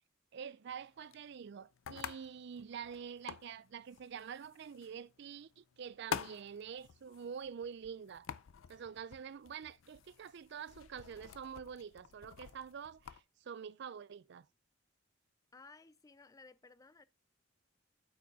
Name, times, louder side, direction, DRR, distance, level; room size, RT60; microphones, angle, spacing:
voice 1, 0.3-8.3 8.7-14.5, right 7 dB, 60° right, 0.4 m, -47 dB
sound 1, 0.7-13.2, left 7 dB, 90° left, 0.5 m, -49 dB
voice 2, 15.5-17.0, left 4 dB, 20° left, 0.3 m, -58 dB
8.5 x 5.9 x 3.9 m
head